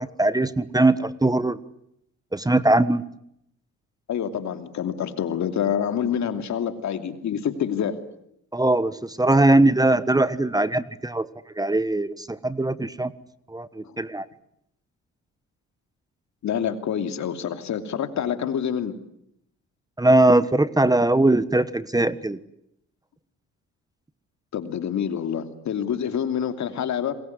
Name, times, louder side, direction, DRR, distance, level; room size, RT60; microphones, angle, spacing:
voice 1, 0.0-1.6 2.3-3.0 8.5-11.3 11.6-13.1 13.5-14.2 20.0-22.4, right 2 dB, 10° right, 15 dB, 1.3 m, -20 dB
voice 2, 4.1-8.0 13.8-13.9 16.4-18.9 24.5-27.1, left 8 dB, 65° left, 8 dB, 2.9 m, -27 dB
28.0 x 21.5 x 9.6 m, 0.75 s
cardioid pair, 90°, 30 cm